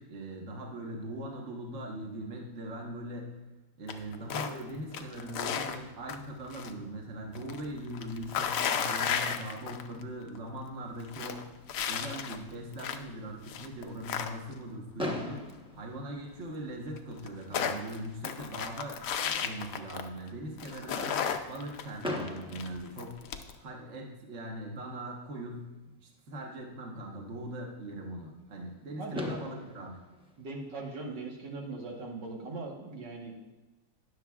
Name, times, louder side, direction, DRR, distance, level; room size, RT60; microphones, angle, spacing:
voice 1, 0.0-3.3 3.8-11.5 11.9-15.5 15.7-30.0, right 1 dB, 45° right, 0 dB, 1.4 m, -41 dB
sound 1, 3.9-4.6 4.9-6.7 7.0-10.0 10.3-10.4 10.8-13.1 13.5-14.7 16.3-16.4 16.6-16.7 17.0-20.3 20.6-23.5, left 7 dB, 65° left, 0.8 m, -34 dB
Fireworks, 15.0-17.0 17.8-17.9 18.1-18.3 18.6-18.7 22.0-23.9 25.6-25.7 28.7-28.8 29.1-31.4, left 1 dB, 5° right, 0.5 m, -40 dB
voice 2, 29.0-29.3 30.4-33.3, right 3 dB, 75° right, 0 dB, 1.9 m, -40 dB
19.5 x 6.6 x 2.4 m, 1.1 s
omnidirectional pair, 1.9 m